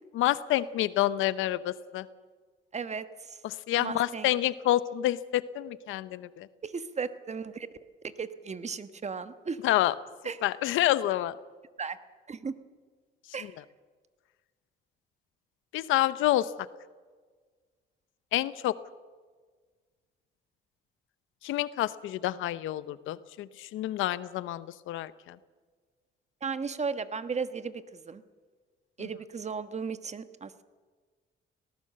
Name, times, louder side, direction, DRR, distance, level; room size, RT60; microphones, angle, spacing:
voice 1, 0.2-2.1 3.4-6.5 9.6-9.9 10.4-11.4 15.7-16.5 18.3-18.7 21.4-25.4, left 14 dB, 90° left, 16 dB, 0.8 m, -28 dB
voice 2, 2.7-3.4 3.8-4.3 6.6-7.7 8.0-9.6 10.2-10.4 11.8-12.0 12.3-12.5 13.3-13.6 26.4-28.2 29.0-30.6, right 5 dB, 35° right, 12 dB, 1.3 m, -35 dB
19.0 x 18.0 x 7.6 m, 1.5 s
cardioid pair, 90°, 20 cm